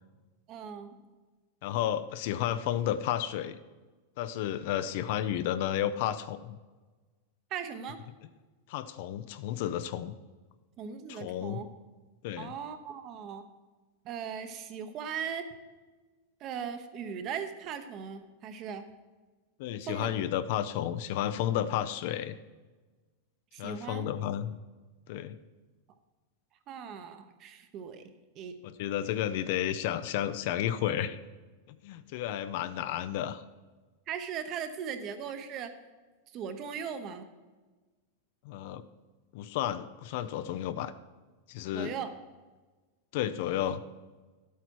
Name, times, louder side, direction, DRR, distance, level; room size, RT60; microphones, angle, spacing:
voice 1, 0.5-0.9 7.5-8.0 10.8-11.7 12.4-13.4 14.0-15.4 16.4-18.8 19.8-20.1 23.5-24.1 26.7-28.1 28.3-28.5 34.1-35.7 36.3-37.2 41.7-42.1, right 7 dB, 30° right, 9 dB, 0.9 m, -38 dB
voice 2, 1.6-3.6 4.2-6.6 8.7-10.1 11.1-11.6 12.2-12.5 19.6-22.4 23.6-24.5 25.1-25.4 28.6-31.2 31.7-33.4 38.4-38.8 39.3-40.9 41.5-41.9 43.1-43.8, left 11 dB, 50° left, 12 dB, 0.5 m, -32 dB
12.0 x 8.2 x 4.6 m, 1.3 s
supercardioid pair, 170°, 0 cm